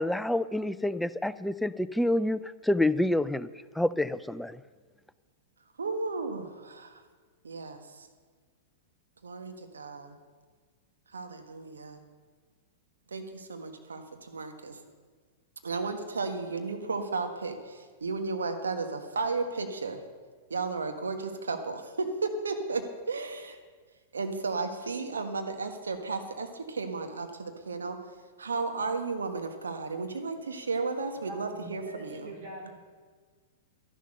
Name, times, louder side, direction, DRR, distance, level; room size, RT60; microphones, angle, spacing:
voice 1, 0.0-3.5 3.8-4.6, left 1 dB, 5° left, 15 dB, 0.4 m, -28 dB
voice 2, 5.8-7.0 7.4-8.1 9.2-10.2 11.1-12.0 13.1-14.8 15.6-20.0 20.5-23.6 24.1-28.0 28.4-32.3, right 4 dB, 80° right, 6 dB, 1.5 m, -34 dB
voice 3, 31.2-32.7, right 1 dB, 55° right, 0 dB, 3.6 m, -42 dB
12.0 x 11.0 x 6.5 m, 1.5 s
hypercardioid pair, 105°, 0 cm